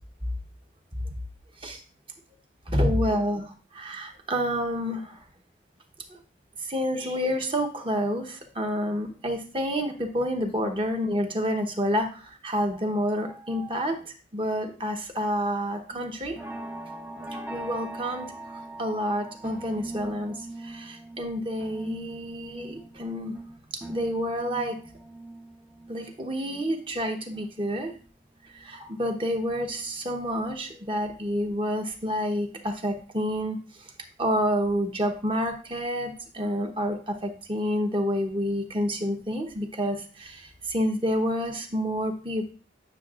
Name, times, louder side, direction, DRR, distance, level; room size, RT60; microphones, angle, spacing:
voice 1, 2.7-5.2 6.1-6.2 6.6-16.4 17.5-23.6 23.9-24.8 25.9-27.9 28.5-33.9 34.2-42.5, equal, 30° right, 4 dB, 0.9 m, -29 dB
sound 1, 15.9-28.1 28.4-30.0 30.4-30.7 31.0-31.1, right 2 dB, 10° right, 0.5 m, -42 dB
9.2 x 6.3 x 2.4 m, 0.39 s
head